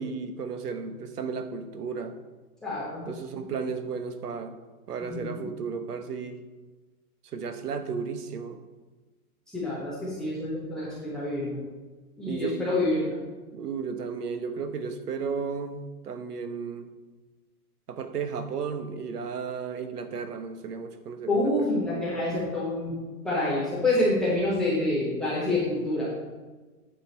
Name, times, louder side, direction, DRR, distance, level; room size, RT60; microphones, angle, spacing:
voice 1, 0.0-2.2 3.1-4.6 4.9-6.4 7.2-8.6 12.3-12.6 13.5-15.8 16.0-16.9 17.9-21.5, right 5 dB, 80° right, 9 dB, 1.2 m, -34 dB
voice 2, 2.6-3.1 5.0-5.4 9.5-11.6 12.2-13.2 21.3-23.0 23.2-26.0, left 2 dB, ahead, -10 dB, 0.6 m, -27 dB
9.2 x 6.8 x 4.3 m, 1.3 s
hypercardioid pair, 165°, 46 cm